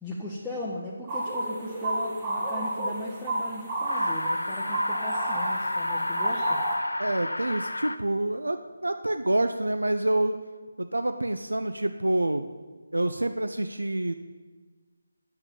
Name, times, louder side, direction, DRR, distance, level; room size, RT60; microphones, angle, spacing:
voice 1, 0.0-6.6, left 1 dB, ahead, -9 dB, 0.8 m, -38 dB
sound 1, 1.1-6.8, right 1 dB, 25° right, 1.4 m, -30 dB
sound 2, 3.8-8.0, left 1 dB, 75° left, 0.4 m, -31 dB
voice 2, 7.0-10.4 10.8-12.4 12.9-14.1, right 1 dB, 75° right, 8 dB, 0.4 m, -27 dB
7.9 x 5.7 x 7.2 m, 1.3 s
figure-of-eight pair, 155°, 0 cm